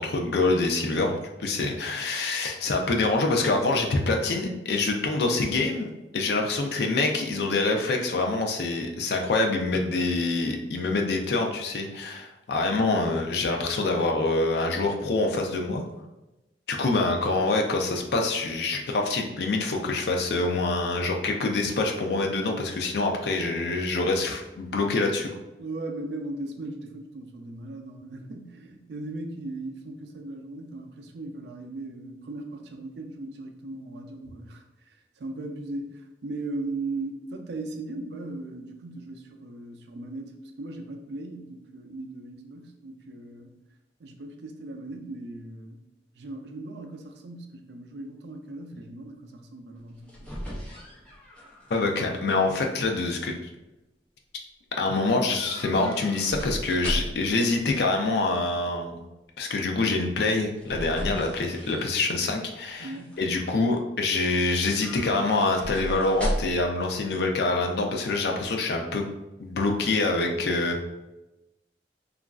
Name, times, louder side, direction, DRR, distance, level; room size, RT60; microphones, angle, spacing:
voice 1, 0.0-15.8 16.7-25.3 51.7-53.3 54.8-59.0 59.4-62.9 63.2-69.0 69.4-70.8, left 3 dB, 65° left, 2 dB, 0.4 m, -25 dB
voice 2, 25.6-43.6 44.0-45.8 46.2-50.5 62.8-63.1, right 2 dB, 70° right, 4 dB, 0.4 m, -38 dB
sound 1, 49.8-52.2 52.5-53.1 55.3-57.4 60.2-62.3 62.7-63.2 64.7-66.7 67.0-67.1, equal, 5° left, 0.5 m, -36 dB
3.0 x 2.4 x 2.3 m, 0.97 s
head